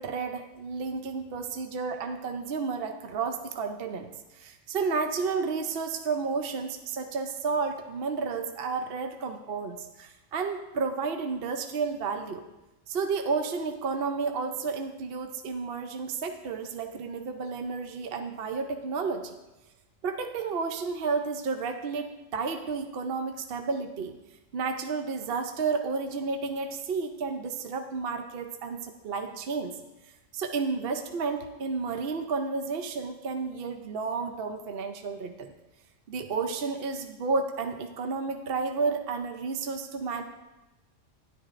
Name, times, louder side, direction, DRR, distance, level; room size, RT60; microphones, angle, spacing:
voice 1, 0.0-12.4 12.9-19.4 20.0-24.1 24.5-29.7 30.3-35.5 36.1-40.2, right 4 dB, 55° right, 6 dB, 0.7 m, -31 dB
12.5 x 10.5 x 2.5 m, 1.0 s
omnidirectional pair, 1.3 m